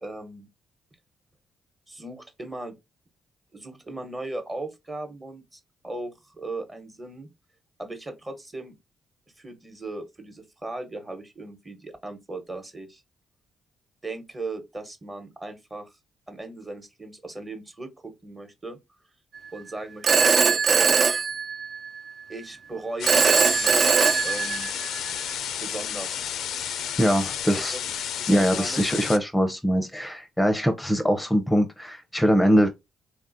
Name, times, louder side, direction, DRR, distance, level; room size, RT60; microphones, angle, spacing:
voice 1, 0.0-0.5 1.9-2.7 3.5-7.3 7.8-8.8 9.4-13.0 14.0-15.9 16.3-18.8 19.5-21.0 22.3-24.7 25.6-26.2 27.5-27.8 28.2-28.8, right 2 dB, 25° right, 1.1 m, -37 dB
Telephone, 20.0-22.0 23.0-25.0, right 5 dB, 50° right, 0.4 m, -21 dB
sound 1, 23.0-29.2, left 9 dB, 75° left, 0.4 m, -31 dB
voice 2, 27.0-27.8 28.3-32.7, equal, 10° left, 0.6 m, -22 dB
3.3 x 2.3 x 2.6 m
supercardioid pair, 60°, 0 cm